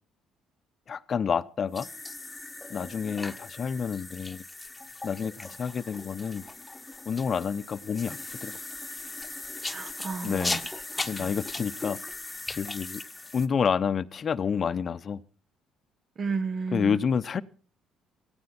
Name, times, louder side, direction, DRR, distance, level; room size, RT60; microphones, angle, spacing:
voice 1, 0.9-1.9 2.7-4.4 5.0-6.4 7.1-8.6 10.2-10.6 11.1-12.0 12.5-13.0 13.3-15.2 16.7-17.4, left 6 dB, 45° left, 0.8 m, -29 dB
sound 1, 1.7-13.5, left 2 dB, 15° left, 1.2 m, -38 dB
voice 2, 9.6-10.6 10.9-11.3 16.2-17.0, right 4 dB, 45° right, 1.0 m, -33 dB
17.0 x 16.0 x 4.3 m
supercardioid pair, 80°, 0 cm